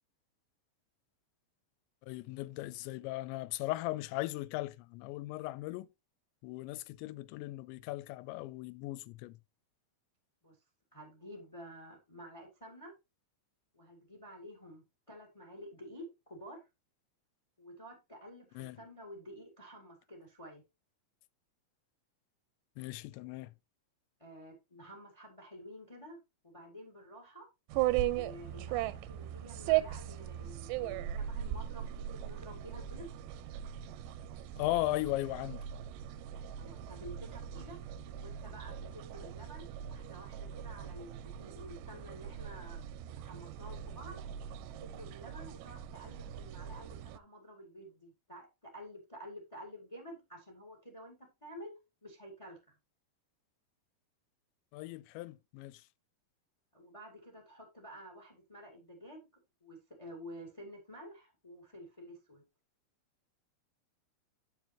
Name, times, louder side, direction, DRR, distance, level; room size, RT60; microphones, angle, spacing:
voice 1, 2.0-5.9 6.4-9.4 18.6-18.8 22.8-23.5 34.6-35.6 54.7-55.9, left 17 dB, 85° left, 2.7 m, -37 dB
voice 2, 10.9-12.9 13.7-16.7 17.6-20.6 24.2-26.2 26.4-27.5 28.1-33.1 36.6-37.8 38.1-44.2 44.8-51.7 52.0-52.7 56.7-59.3 59.6-62.4, equal, 25° left, 0.7 m, -50 dB
sound 1, 27.7-47.2, right 12 dB, 80° right, 2.6 m, -38 dB
9.2 x 6.8 x 2.9 m
omnidirectional pair, 5.3 m